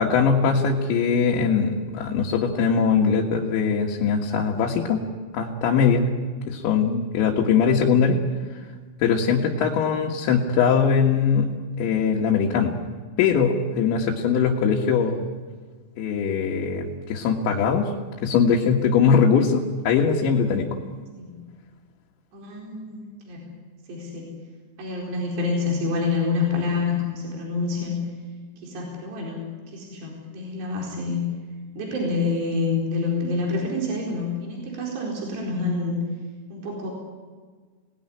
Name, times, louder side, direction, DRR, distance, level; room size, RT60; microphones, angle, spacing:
voice 1, 0.0-5.0 5.3-6.1 6.5-8.2 9.0-11.5 11.8-12.8 13.2-15.2 16.0-17.9 18.2-20.7, left 6 dB, 90° left, -1 dB, 4.0 m, -21 dB
voice 2, 22.3-23.5 23.9-24.4 24.8-28.0 28.6-29.5 29.7-31.3 31.7-36.0 36.5-36.9, left 3 dB, 70° right, -1 dB, 6.5 m, -27 dB
28.5 x 19.0 x 10.0 m, 1.5 s
omnidirectional pair, 5.0 m